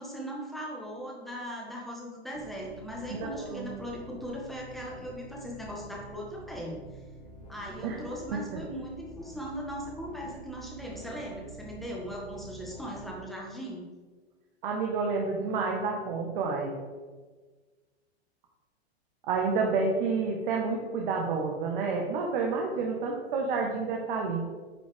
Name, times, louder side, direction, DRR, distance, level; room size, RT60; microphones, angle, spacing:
voice 1, 0.0-6.8 7.5-13.8, equal, ahead, -2 dB, 1.7 m, -39 dB
sound 1, 2.3-13.1, right 1 dB, 20° left, 2.2 m, -48 dB
voice 2, 3.1-3.8 7.8-8.0 14.6-16.7 19.3-24.4, right 4 dB, 50° right, 0 dB, 1.3 m, -29 dB
10.0 x 5.3 x 3.4 m, 1.4 s
figure-of-eight pair, 105°, 33 cm